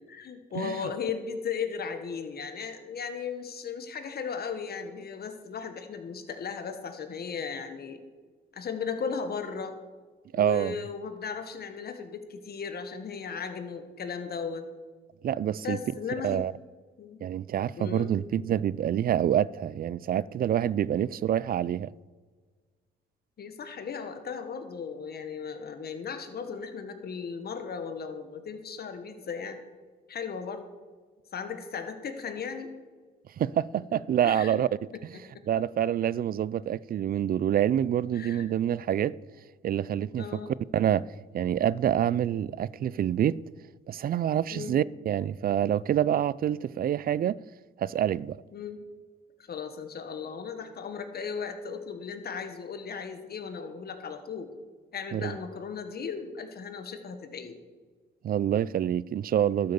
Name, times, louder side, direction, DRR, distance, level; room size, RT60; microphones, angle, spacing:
voice 1, 0.0-8.0 8.5-9.8 10.3-14.6 15.6-16.4 17.0-17.2 17.8-18.2 23.4-29.6 30.1-30.6 31.3-32.7 34.2-34.6 38.1-38.5 40.2-40.5 44.5-44.8 48.5-48.8 49.5-54.5 54.9-57.6, left 6 dB, 50° left, 1.6 m, -36 dB
voice 2, 10.3-10.8 15.2-15.8 16.2-16.5 17.2-21.9 33.4-34.7 35.5-39.2 39.6-40.4 40.7-41.1 41.3-43.4 43.9-47.4 47.8-48.4 55.1-55.3 58.2-59.7, right 10 dB, 50° right, 0.4 m, -27 dB
12.5 x 7.8 x 7.0 m
cardioid pair, 90°, 20 cm